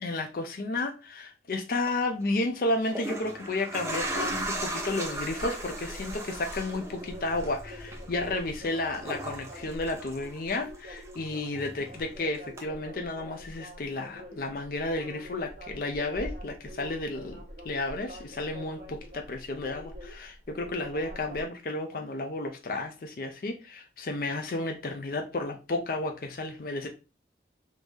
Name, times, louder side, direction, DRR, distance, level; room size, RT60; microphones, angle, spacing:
voice 1, 0.0-17.4 17.7-26.9, left 2 dB, 50° left, 0.4 m, -32 dB
sound 1, 1.7-1.9 2.7-10.8 11.1-12.1 12.6-12.7, right 1 dB, 15° right, 0.6 m, -37 dB
sound 2, 3.9-21.4, equal, 50° right, 1.0 m, -45 dB
3.5 x 2.6 x 3.1 m
head